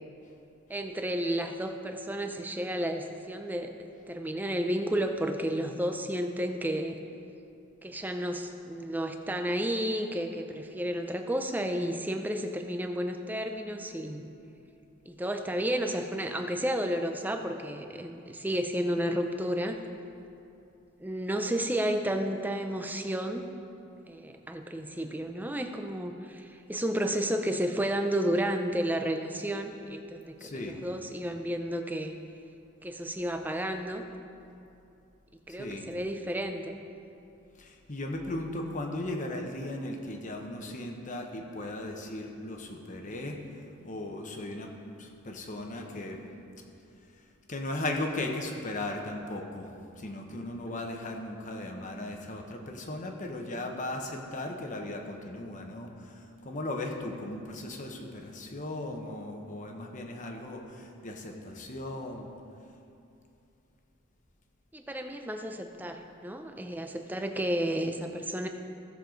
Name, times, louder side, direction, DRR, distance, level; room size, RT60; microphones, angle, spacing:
voice 1, 0.7-7.0 7.8-14.3 15.1-19.8 21.0-23.5 24.1-32.1 32.8-34.0 35.5-36.8 64.7-68.5, equal, 10° right, 5 dB, 0.5 m, -32 dB
voice 2, 30.4-30.8 35.5-35.9 37.6-43.4 43.8-44.7 45.0-46.2 47.5-62.3, left 1 dB, 40° left, 3 dB, 1.0 m, -37 dB
16.5 x 6.8 x 3.9 m, 2.7 s
head